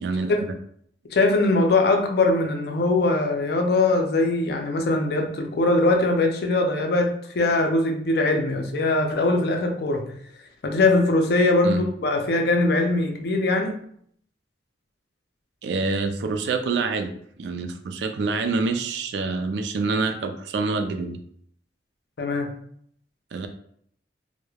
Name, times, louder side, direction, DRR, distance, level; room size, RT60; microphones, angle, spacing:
voice 1, 1.1-10.1 10.6-13.8 22.2-22.5, left 2 dB, 60° left, 3 dB, 0.4 m, -21 dB
voice 2, 15.6-17.1 17.4-21.2 23.3-23.5, right 4 dB, 70° right, 7 dB, 0.3 m, -26 dB
3.1 x 2.0 x 2.2 m, 0.66 s
head